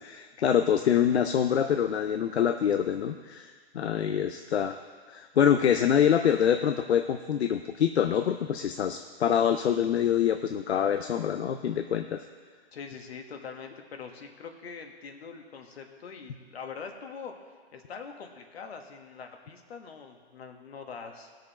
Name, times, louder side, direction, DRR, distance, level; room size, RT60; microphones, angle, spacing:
voice 1, 0.0-4.8 5.1-12.2, left 8 dB, 90° left, 7 dB, 0.6 m, -25 dB
voice 2, 12.7-21.3, left 5 dB, 75° left, 4 dB, 1.5 m, -43 dB
16.5 x 6.6 x 4.2 m, 1.6 s
hypercardioid pair, 130°, 32 cm